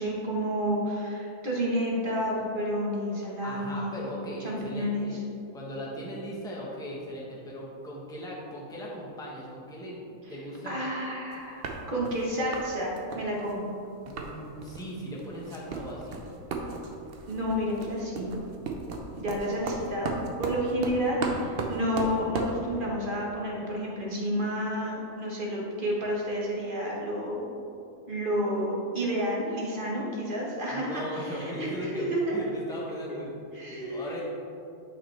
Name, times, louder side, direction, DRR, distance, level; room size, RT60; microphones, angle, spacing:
voice 1, 0.0-3.9 4.4-5.1 10.3-10.4 10.7-13.7 17.3-18.3 19.2-20.1 20.4-27.6 28.1-32.4 33.5-34.1, equal, 35° right, -4 dB, 1.4 m, -30 dB
voice 2, 3.4-5.2 5.5-10.8 14.0-16.2 30.7-33.4 33.7-34.3, equal, 5° left, -4 dB, 1.0 m, -38 dB
sound 1, 11.3-11.4 11.6-12.2 12.5-12.7 13.0-14.3 14.6-14.9 15.2-22.6, right 3 dB, 50° right, 0.7 m, -35 dB
8.6 x 5.9 x 3.3 m, 2.7 s
omnidirectional pair, 1.6 m